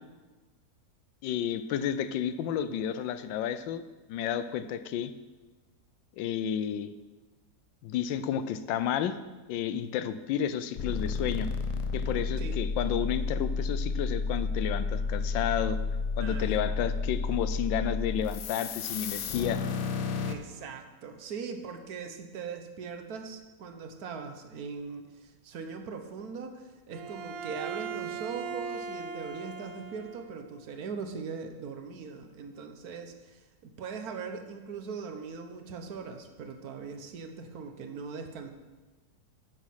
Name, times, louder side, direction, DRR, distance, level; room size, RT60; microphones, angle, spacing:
voice 1, 1.2-3.8 4.1-5.1 6.2-6.9 7.8-9.2 9.5-11.5 11.9-15.8 16.2-19.6, left 9 dB, 85° left, 12 dB, 1.3 m, -31 dB
sound 1, 10.8-20.3, left 4 dB, 60° left, 0.9 m, -31 dB
voice 2, 16.2-16.7 20.2-38.5, right 5 dB, 60° right, 6 dB, 1.4 m, -40 dB
Bowed string instrument, 26.9-30.4, right 6 dB, 80° right, 1.5 m, -39 dB
9.7 x 7.4 x 5.7 m, 1.2 s
omnidirectional pair, 2.0 m